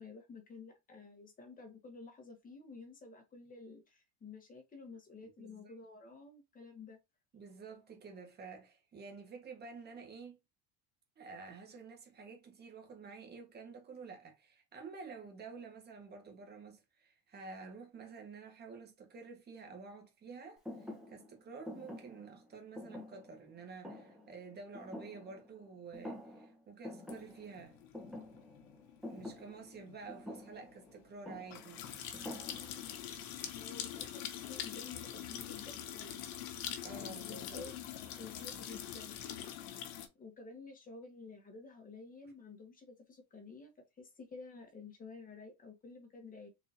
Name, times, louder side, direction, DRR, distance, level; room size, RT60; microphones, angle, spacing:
voice 1, 0.0-7.0 33.6-36.2 36.9-37.9 38.2-39.2 40.2-43.7 44.0-46.5, left 4 dB, 20° left, 1.2 m, -51 dB
voice 2, 5.2-5.7 7.3-10.4 11.2-27.8 29.1-31.9 36.8-37.7, right 4 dB, 25° right, 1.2 m, -50 dB
Thump thud, 20.6-25.7 25.9-26.6 26.8-33.0, left 1 dB, ahead, 1.1 m, -48 dB
sound 1, 27.1-40.1, left 10 dB, 70° left, 1.0 m, -44 dB
4.0 x 2.7 x 2.8 m
cardioid pair, 145°, 43 cm